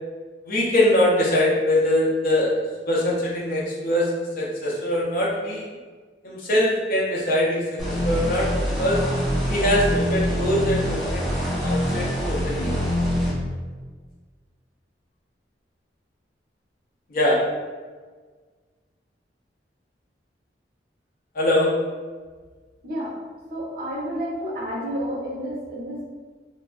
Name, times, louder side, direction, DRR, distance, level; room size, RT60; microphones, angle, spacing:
voice 1, 0.5-2.6 2.9-5.6 6.2-8.5 8.8-9.0 9.5-11.3 11.6-12.7 17.1-17.4 21.3-21.7, left 1 dB, 55° left, -5 dB, 0.6 m, -22 dB
sound 1, 7.8-13.3, equal, ahead, 0.9 m, -25 dB
voice 2, 23.5-26.0, equal, 55° right, -5 dB, 0.9 m, -30 dB
3.1 x 2.4 x 2.3 m, 1.5 s
head